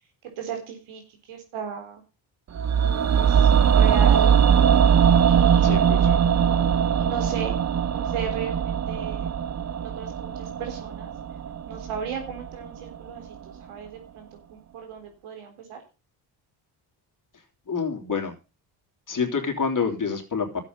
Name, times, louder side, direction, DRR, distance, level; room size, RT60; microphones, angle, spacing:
voice 1, 0.2-2.0 2.8-4.4 5.2-6.2 7.0-7.6 7.9-9.3 9.8-11.1 11.7-15.8, right 7 dB, 80° right, 4 dB, 3.8 m, -36 dB
sound 1, 2.5-12.7 12.9-13.0, right 8 dB, 35° right, 0.7 m, -21 dB
voice 2, 5.6-6.2 17.7-18.3 19.1-20.6, left 5 dB, 40° left, 4 dB, 3.3 m, -27 dB
12.0 x 8.3 x 5.5 m, 0.31 s
supercardioid pair, 65°, 49 cm